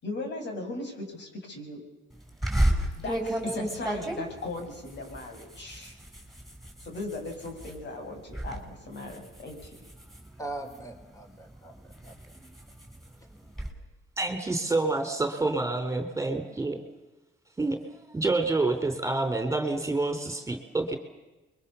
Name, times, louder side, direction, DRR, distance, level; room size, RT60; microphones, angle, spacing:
voice 1, 0.0-1.8 2.9-5.9 6.8-9.7, left 2 dB, 60° left, 3 dB, 7.4 m, -38 dB
sound 1, 2.4-7.8 8.2-8.6 8.9-11.0 11.5-13.7, right 1 dB, ahead, 6.6 m, -32 dB
voice 2, 10.4-12.1, right 2 dB, 15° left, 4 dB, 5.0 m, -41 dB
voice 3, 14.2-16.8 17.6-17.8 18.1-21.0, right 2 dB, 15° right, 6 dB, 3.8 m, -28 dB
29.0 x 23.5 x 7.1 m, 1.1 s
cardioid pair, 90°, 20 cm